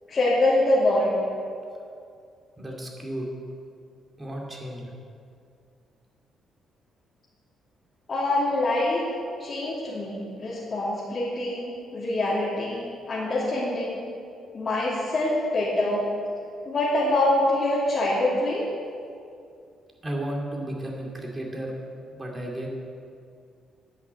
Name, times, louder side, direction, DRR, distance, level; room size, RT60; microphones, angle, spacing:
voice 1, 0.1-1.2 8.1-9.0 9.4-14.0 14.5-16.0 16.6-18.7, left 1 dB, 40° left, -9 dB, 2.6 m, -25 dB
voice 2, 2.6-3.3 4.2-4.9 20.0-21.7 22.1-22.7, right 1 dB, 20° right, -1 dB, 2.4 m, -33 dB
10.5 x 6.3 x 8.1 m, 2.4 s
cardioid pair, 90°, 0 cm